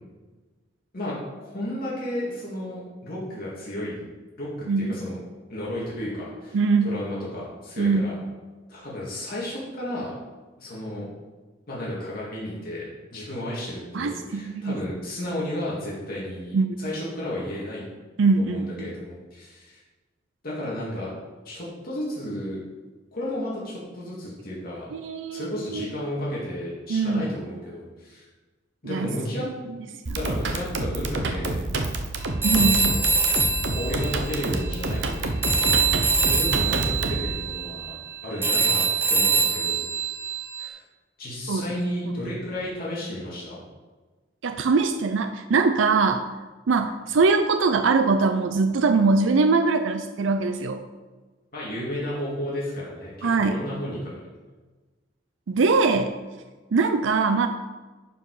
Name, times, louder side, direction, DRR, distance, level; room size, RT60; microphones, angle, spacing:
voice 1, 0.9-4.0 4.4-5.2 5.5-6.6 6.8-8.1 8.7-10.1 10.6-11.1 11.7-12.9 13.1-17.8 18.4-19.8 20.4-21.1 21.4-22.6 23.1-24.9 25.3-28.3 28.8-29.5 30.1-31.6 32.5-33.1 33.7-35.2 36.0-37.9 38.2-39.8 40.6-40.8 41.2-43.6 51.5-54.1, left 1 dB, 55° left, -6 dB, 2.2 m, -33 dB
voice 2, 6.5-6.9 7.8-8.1 13.9-14.8 16.5-16.7 18.2-18.9 24.9-25.9 26.9-27.3 28.8-29.1 30.1-30.2 32.4-32.9 41.5-41.7 42.2-42.3 44.4-46.3 46.7-50.8 53.2-53.6 55.5-56.1 56.7-57.5, right 4 dB, 90° right, 8 dB, 0.5 m, -22 dB
sound 1, 30.1-37.3, right 2 dB, 65° right, 0.9 m, -28 dB
Telephone, 32.4-35.2 35.4-40.7, right 4 dB, 10° right, 0.8 m, -24 dB
11.0 x 4.7 x 4.8 m, 1.3 s
head